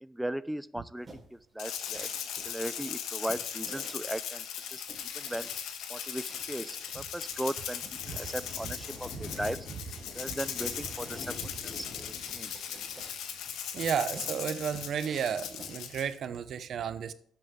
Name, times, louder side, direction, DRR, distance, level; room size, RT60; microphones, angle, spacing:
voice 1, 0.0-2.1 2.4-4.4 4.7-4.8 5.1-5.5 5.9-9.7 10.2-11.4 11.6-11.9 12.3-12.5, right 1 dB, 5° right, 0.4 m, -37 dB
sound 1, 1.0-16.3, right 2 dB, 25° right, 4.9 m, -53 dB
Rattle (instrument), 1.6-16.1, left 8 dB, 85° left, 1.5 m, -38 dB
Thunder, 6.7-15.8, left 3 dB, 60° left, 3.6 m, -48 dB
voice 2, 13.7-17.1, right 8 dB, 65° right, 0.8 m, -33 dB
12.5 x 8.4 x 3.8 m
cardioid pair, 90°, 0 cm